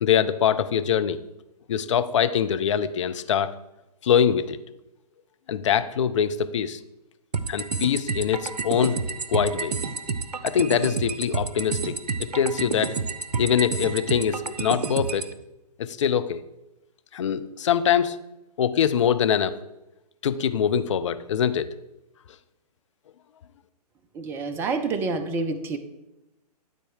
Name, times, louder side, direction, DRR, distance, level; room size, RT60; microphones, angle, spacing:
voice 1, 0.0-1.2 1.7-3.5 4.0-4.6 5.5-6.8 7.5-9.0 9.3-9.8 10.4-12.9 13.4-15.3 15.8-16.4 17.1-18.2 18.6-19.5 20.2-21.7, left 8 dB, 45° left, 11 dB, 0.6 m, -23 dB
sound 1, 7.3-15.3, right 4 dB, 70° right, 0.7 m, -29 dB
voice 2, 24.1-25.8, right 4 dB, 10° right, 9 dB, 0.4 m, -28 dB
12.0 x 4.1 x 6.4 m, 0.94 s
figure-of-eight pair, 125°, 21 cm